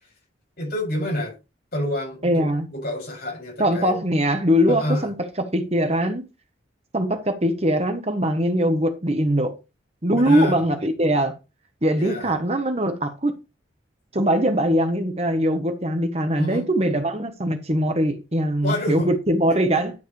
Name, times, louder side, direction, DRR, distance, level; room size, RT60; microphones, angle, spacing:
voice 1, 0.6-1.4 1.7-2.5 2.7-3.9 4.7-5.1 10.1-10.6 12.0-12.3 16.4-16.7 18.6-19.1, left 1 dB, 50° left, 7.3 m, -27 dB
voice 2, 2.2-2.7 3.6-6.3 6.9-9.6 10.0-11.4 11.8-13.4 14.1-19.9, equal, 30° right, 1.2 m, -22 dB
12.0 x 7.5 x 3.3 m
head